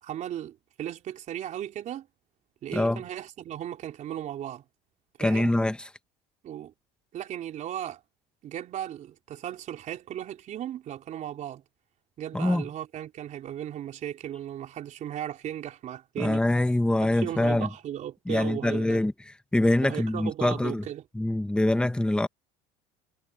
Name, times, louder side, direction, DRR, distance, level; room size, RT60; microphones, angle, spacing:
voice 1, 0.0-2.1 2.6-4.6 5.2-5.5 6.4-6.7 7.1-8.0 8.4-11.6 12.2-16.4 17.0-19.0 19.8-21.0, right 11 dB, 50° right, 3.9 m, -36 dB
voice 2, 2.7-3.0 5.2-5.8 12.3-12.6 16.2-17.7 18.3-19.1 19.5-20.8 21.1-22.3, left 1 dB, 5° left, 1.6 m, -24 dB
supercardioid pair, 110°, 16 cm